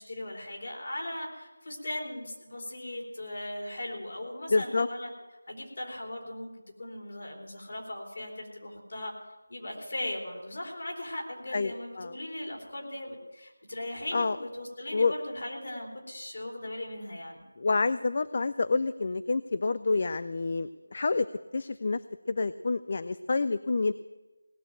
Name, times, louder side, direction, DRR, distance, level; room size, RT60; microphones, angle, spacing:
voice 1, 0.0-5.1 5.5-6.5 6.8-9.1 9.5-17.4, left 1 dB, 60° left, 0 dB, 3.4 m, -38 dB
voice 2, 4.5-4.9 11.5-12.1 14.1-14.4 14.9-15.1 17.6-21.3 21.5-22.0 22.3-23.9, left 3 dB, 40° left, 15 dB, 0.3 m, -28 dB
18.0 x 6.4 x 8.9 m, 1.2 s
figure-of-eight pair, 170°, 0 cm